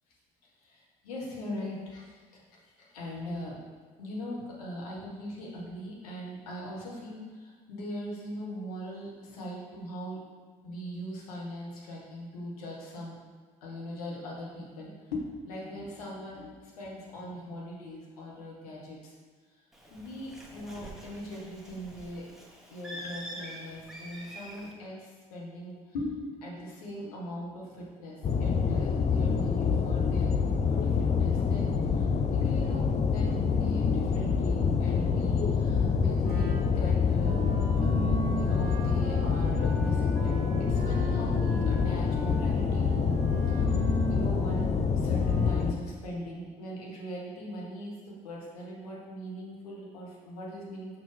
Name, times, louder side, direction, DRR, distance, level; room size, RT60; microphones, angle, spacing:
voice 1, 0.6-2.1 2.8-3.6 4.0-10.2 10.6-13.2 13.6-19.1 19.9-22.3 22.6-40.4 40.7-43.2 43.5-44.7 45.0-51.0, equal, 80° left, -3 dB, 1.5 m, -40 dB
Bird, 19.7-24.7, equal, ahead, 1.4 m, -45 dB
sound 1, 28.2-45.7, left 5 dB, 35° left, 0.6 m, -26 dB
Wind instrument woodwind instrument, 36.2-45.7, right 6 dB, 55° right, 1.2 m, -40 dB
6.0 x 5.9 x 3.4 m, 1.4 s
hypercardioid pair, 50°, 19 cm